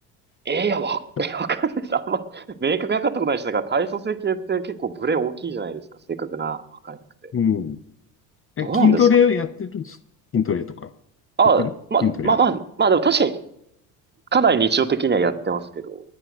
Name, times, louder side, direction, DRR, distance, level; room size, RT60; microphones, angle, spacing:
voice 1, 0.5-5.8 6.2-7.0 7.2-7.3 8.6-9.1 11.4-13.4 14.3-16.0, right 5 dB, 20° right, 8 dB, 1.4 m, -22 dB
voice 2, 7.3-7.8 8.6-10.0 10.3-10.9 11.6-11.7 12.0-12.3, left 7 dB, 30° left, 15 dB, 0.7 m, -20 dB
20.5 x 10.5 x 6.3 m, 0.77 s
hypercardioid pair, 75°, 45 cm